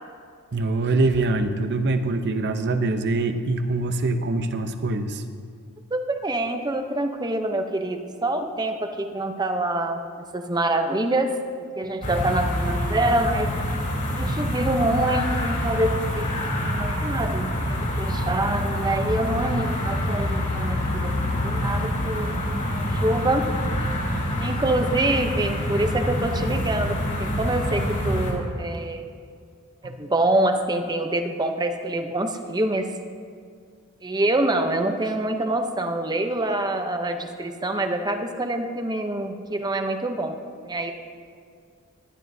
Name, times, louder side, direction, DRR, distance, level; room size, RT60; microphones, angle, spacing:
voice 1, 0.5-5.2 29.8-30.0, right 2 dB, 50° right, 8 dB, 0.7 m, -24 dB
voice 2, 5.9-10.0 10.3-11.3 11.8-13.5 14.1-16.3 16.6-22.4 22.7-23.5 24.4-29.0 29.8-32.9 34.0-40.3 40.7-40.9, right 1 dB, 20° right, 6 dB, 0.7 m, -26 dB
sound 1, 12.0-28.3, left 1 dB, 40° left, 2.7 m, -26 dB
18.0 x 11.5 x 2.7 m, 2.2 s
head